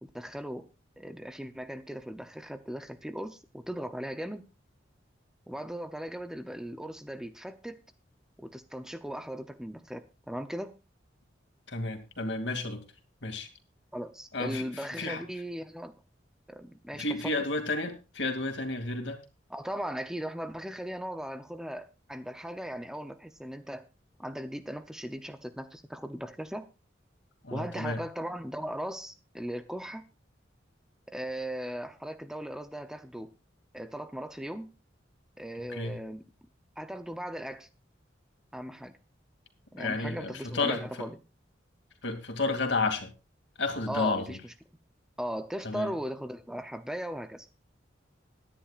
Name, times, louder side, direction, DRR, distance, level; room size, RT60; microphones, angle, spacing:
voice 1, 0.0-0.7 1.0-4.4 5.5-7.8 8.4-10.7 13.9-15.9 16.5-17.3 19.5-23.8 24.2-26.7 27.5-30.0 31.1-33.3 33.7-34.7 35.4-36.2 36.8-37.7 38.5-38.9 39.7-41.1 43.9-44.4 45.2-47.5, equal, 5° right, 9 dB, 0.6 m, -38 dB
voice 2, 11.7-12.8 13.2-13.5 14.3-15.2 16.9-19.2 27.4-28.0 35.7-36.0 39.8-40.8 42.0-43.1 43.6-44.4 45.6-45.9, left 3 dB, 65° left, 4 dB, 2.5 m, -31 dB
21.5 x 10.5 x 2.4 m, 0.29 s
head